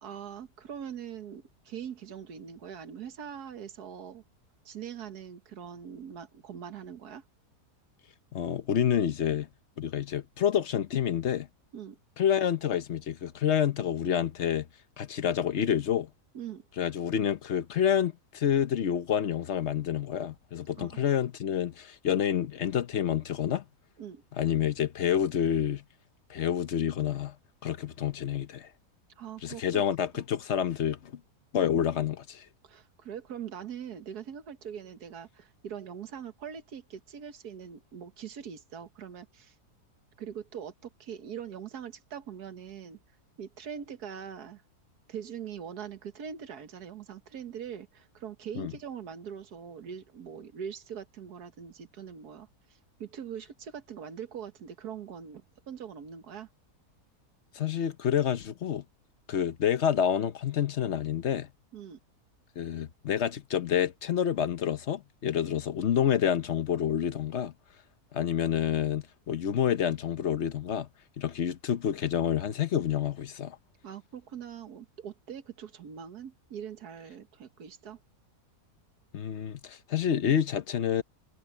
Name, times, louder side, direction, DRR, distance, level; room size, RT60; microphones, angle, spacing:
voice 1, 0.0-4.2 4.7-7.2 11.7-12.0 16.3-16.7 20.8-21.0 24.0-24.2 29.2-30.0 32.6-39.6 40.2-43.0 43.4-44.6 45.1-52.5 53.0-56.5 61.7-62.0 73.8-78.0, right 8 dB, 75° right, 1.8 m, -42 dB
voice 2, 8.3-9.5 9.8-11.5 12.2-14.7 15.0-16.1 16.8-23.6 24.4-25.8 26.3-27.3 27.6-28.7 29.4-31.1 31.5-32.4 48.6-48.7 57.5-58.8 59.3-61.5 62.6-67.5 68.1-70.9 71.2-73.6 79.1-81.0, left 9 dB, 55° left, 1.0 m, -28 dB
omnidirectional pair, 1.7 m